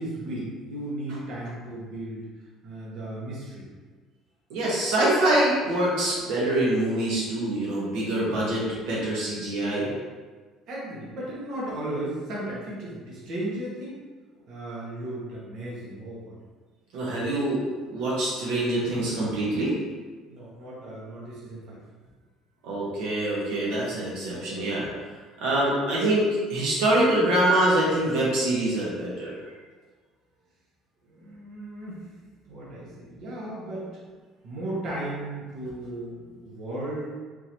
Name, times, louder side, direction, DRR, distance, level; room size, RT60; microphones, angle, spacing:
voice 1, 0.0-2.3 2.6-3.7 10.7-14.0 14.5-16.3 20.3-21.8 31.1-32.0 32.5-33.9 34.4-37.1, right 1 dB, 55° right, -6 dB, 1.1 m, -35 dB
voice 2, 4.5-9.9 16.9-17.6 17.9-19.7 22.6-24.9 25.4-26.2 26.5-29.3, right 1 dB, 85° right, -6 dB, 1.0 m, -25 dB
3.8 x 2.7 x 3.0 m, 1.4 s
cardioid pair, 160°, 0 cm